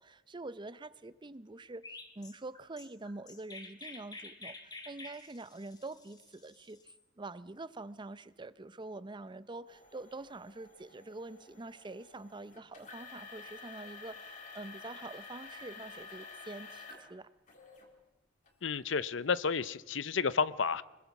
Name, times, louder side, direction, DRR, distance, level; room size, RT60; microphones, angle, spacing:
voice 1, 0.0-17.3, right 2 dB, 25° right, 15 dB, 0.6 m, -46 dB
Chirp tweet, 1.8-7.0, left 3 dB, 20° left, 1.8 m, -49 dB
sound 1, 9.7-17.1 17.5-17.9 18.5-18.6 19.2-19.3, left 4 dB, 45° left, 3.4 m, -50 dB
voice 2, 18.6-20.8, left 5 dB, 75° left, 17 dB, 0.7 m, -31 dB
25.0 x 21.5 x 6.0 m, 1.1 s
head